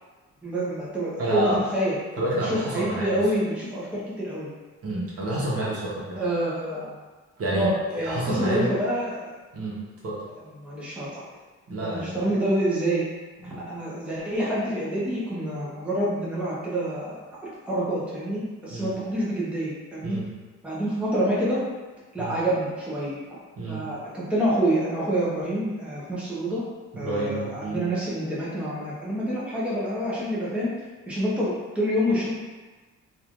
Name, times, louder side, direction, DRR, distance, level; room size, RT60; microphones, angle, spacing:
voice 1, 0.4-2.0 2.5-4.5 6.1-6.9 7.5-9.2 10.6-11.2 11.8-13.0 13.4-20.2 20.6-21.6 22.1-23.2 23.7-26.6 27.0-30.7 31.1-32.3, right 1 dB, 5° right, -7 dB, 0.7 m, -27 dB
voice 2, 1.2-1.6 2.2-3.2 4.8-6.2 7.4-8.7 9.5-9.8 10.0-10.2 11.7-12.2 13.4-13.6 18.7-18.9 20.0-20.3 22.2-22.3 23.6-23.8 26.9-27.8, right 1 dB, 50° right, -6 dB, 1.0 m, -29 dB
3.0 x 2.4 x 2.5 m, 1.3 s
cardioid pair, 90°, 30 cm